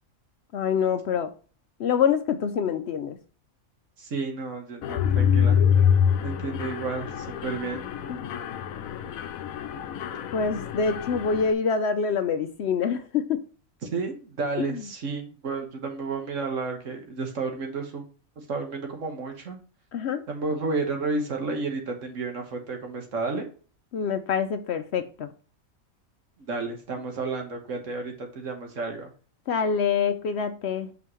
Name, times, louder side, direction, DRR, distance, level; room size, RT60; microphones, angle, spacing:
voice 1, 0.5-1.3 1.8-3.2 8.1-8.3 10.3-13.4 14.6-14.8 19.9-20.2 23.9-25.3 29.5-30.9, left 6 dB, 65° left, 0.7 m, -26 dB
voice 2, 4.0-5.6 6.2-7.9 13.9-18.0 18.4-19.6 20.3-23.5 26.5-29.1, right 3 dB, 65° right, 1.7 m, -31 dB
Mechanisms, 4.8-11.5, left 8 dB, 85° left, 1.1 m, -25 dB
5.8 x 5.5 x 3.1 m
omnidirectional pair, 1.4 m